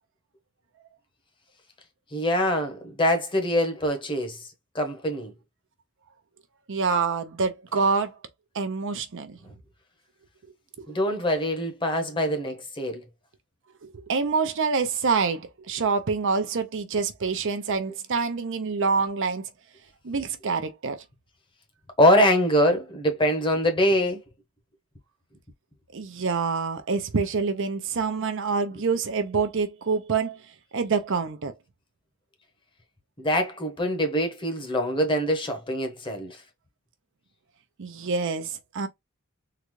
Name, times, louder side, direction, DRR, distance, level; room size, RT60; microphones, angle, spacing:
voice 1, 2.1-4.4 4.7-5.3 10.9-13.0 22.0-24.2 33.2-36.4, equal, 25° left, 1.0 m, -24 dB
voice 2, 6.7-8.1 8.5-9.4 10.8-10.9 13.8-19.5 20.0-21.0 25.9-30.4 30.7-31.5 37.8-38.9, right 4 dB, 60° right, 0.6 m, -26 dB
3.8 x 2.3 x 3.1 m
head